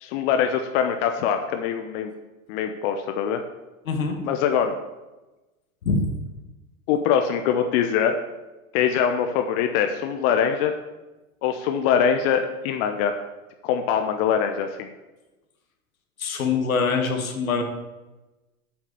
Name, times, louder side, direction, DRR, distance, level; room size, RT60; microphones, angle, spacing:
voice 1, 0.0-2.1 2.5-3.4 4.2-4.8 6.9-8.2 8.7-10.7 11.4-13.1 13.6-14.9, left 8 dB, 50° left, 6 dB, 0.9 m, -23 dB
voice 2, 3.9-4.2 5.8-6.1 16.2-17.6, left 4 dB, 80° left, 4 dB, 1.9 m, -24 dB
8.1 x 6.0 x 6.9 m, 1.1 s
hypercardioid pair, 95°, 41 cm